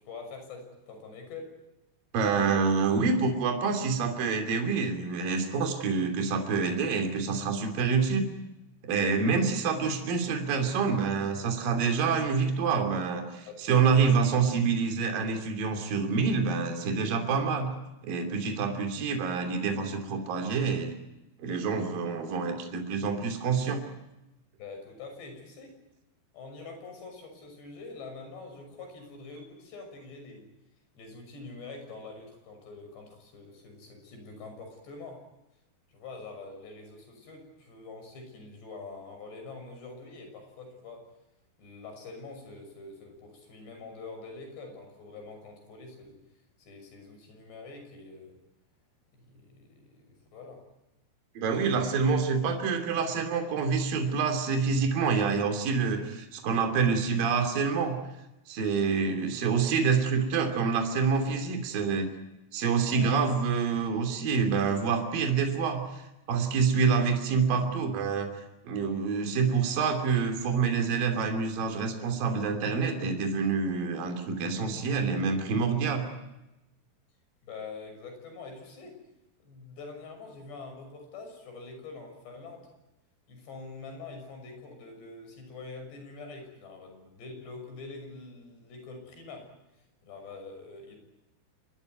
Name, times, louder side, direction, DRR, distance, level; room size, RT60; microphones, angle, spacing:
voice 1, 0.0-1.6 13.5-14.1 24.6-25.8 26.3-30.5 30.9-35.2 35.9-41.1 41.6-46.2 46.6-48.3 49.2-50.6 62.9-63.1 77.4-79.0 79.4-82.7 83.3-89.5 90.0-91.0, left 3 dB, 75° left, 5 dB, 8.6 m, -45 dB
voice 2, 2.1-8.3 8.8-17.7 18.0-20.9 21.4-23.8 51.4-58.0 58.5-62.1 62.5-66.0 66.3-68.3 68.6-76.1, right 5 dB, 55° right, 5 dB, 4.5 m, -27 dB
26.5 x 21.0 x 9.4 m, 0.95 s
omnidirectional pair, 5.0 m